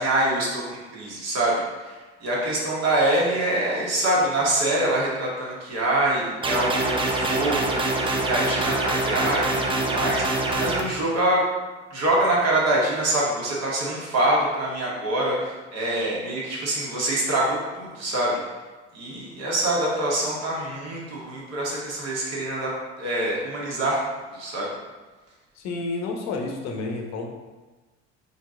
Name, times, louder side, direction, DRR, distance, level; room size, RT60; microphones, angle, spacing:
voice 1, 0.0-11.4 11.9-18.4 18.9-24.0 24.3-24.7, right 1 dB, 45° right, -4 dB, 1.5 m, -25 dB
sound 1, 6.4-10.8, right 2 dB, 15° right, 0.5 m, -24 dB
voice 2, 25.6-27.3, left 3 dB, 45° left, 2 dB, 0.8 m, -30 dB
4.4 x 2.9 x 3.7 m, 1.3 s
figure-of-eight pair, 60°, 37 cm